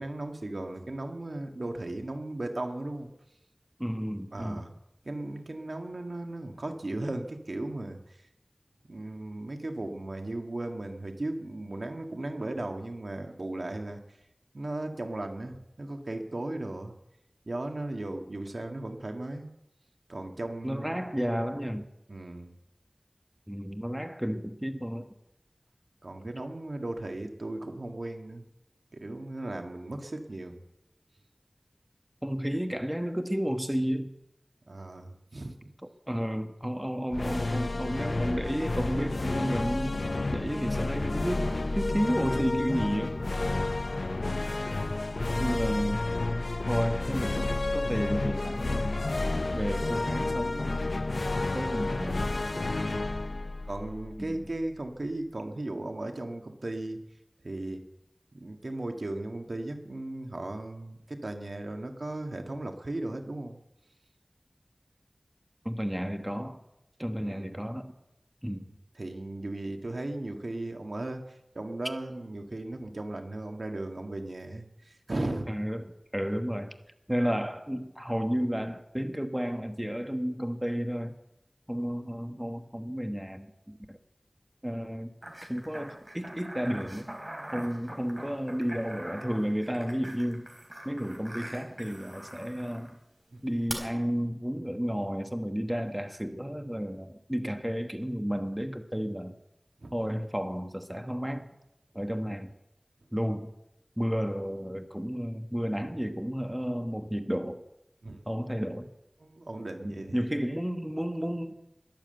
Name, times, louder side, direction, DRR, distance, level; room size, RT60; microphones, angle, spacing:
voice 1, 0.0-3.1 4.3-4.7 5.0-8.0 8.9-14.0 14.5-16.9 17.5-19.5 20.1-21.0 22.1-22.5 26.0-28.4 28.9-30.6 34.7-35.5 52.8-53.0 53.7-57.0 57.4-57.9 58.3-63.6 67.2-67.5 68.4-68.7 69.0-75.5 93.3-93.4 99.8-99.9 108.0-108.2 109.2-110.2, right 2 dB, 85° right, 4 dB, 1.7 m, -36 dB
voice 2, 3.8-4.6 20.6-21.9 23.5-25.1 32.2-34.1 36.1-40.0 40.3-43.2 45.4-46.1 46.7-48.9 49.5-50.8 51.5-52.2 54.2-54.5 65.6-66.6 67.0-67.9 68.4-68.6 75.5-76.7 77.1-81.1 81.7-84.0 84.6-85.1 85.5-87.1 87.5-90.5 90.8-93.0 93.4-99.4 99.9-101.5 101.9-102.5 103.1-103.5 104.0-107.6 108.3-108.9 109.8-111.5, equal, 10° right, 6 dB, 1.3 m, -32 dB
sound 1, 37.1-54.6, left 2 dB, 85° left, 0.6 m, -30 dB
sound 2, 85.2-92.9 93.7-93.8, right 1 dB, 35° right, 3.9 m, -43 dB
21.5 x 7.5 x 7.8 m, 0.86 s
wide cardioid pair, 45°, 0 cm